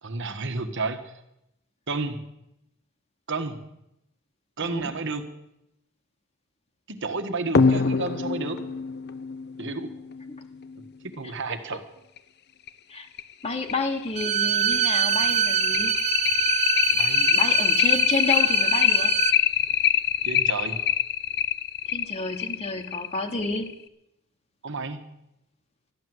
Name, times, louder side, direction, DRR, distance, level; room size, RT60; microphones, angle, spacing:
voice 1, 0.0-1.1 1.9-2.2 3.3-3.6 4.6-5.3 6.9-8.6 9.6-9.9 11.0-11.8 16.9-17.3 20.2-20.8 24.6-25.0, right 3 dB, 60° right, 7 dB, 1.5 m, -31 dB
sound 1, 7.5-10.7 12.2-12.3 12.7-12.8 13.2-13.3 13.7-23.7, left 8 dB, 50° left, 0.7 m, -24 dB
voice 2, 13.4-15.9 17.3-19.1 21.9-23.7, left 3 dB, 30° left, 4 dB, 1.3 m, -30 dB
Bowed string instrument, 14.1-19.4, right 10 dB, 35° right, 0.5 m, -25 dB
13.0 x 11.0 x 7.9 m, 0.84 s
head